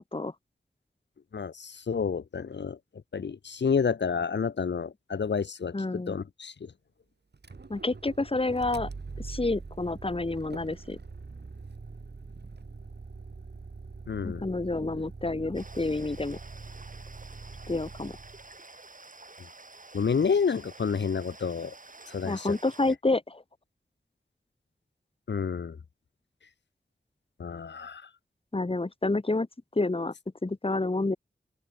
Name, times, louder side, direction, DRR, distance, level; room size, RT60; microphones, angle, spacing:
voice 1, 1.3-2.8 3.1-6.7 14.1-14.4 19.9-21.7 22.1-22.5 25.3-25.8 27.4-28.1, left 6 dB, 85° left, 1.0 m, -29 dB
voice 2, 5.7-6.2 7.7-8.9 9.2-11.0 14.2-16.4 17.7-18.2 22.2-23.4 28.5-29.5 29.7-30.1 30.4-31.2, left 2 dB, 30° left, 1.6 m, -29 dB
Motor vehicle (road), 7.3-18.5, right 4 dB, 70° right, 6.5 m, -43 dB
sound 1, 15.5-23.0, right 3 dB, 50° right, 7.8 m, -50 dB
open air
wide cardioid pair, 50°, 18 cm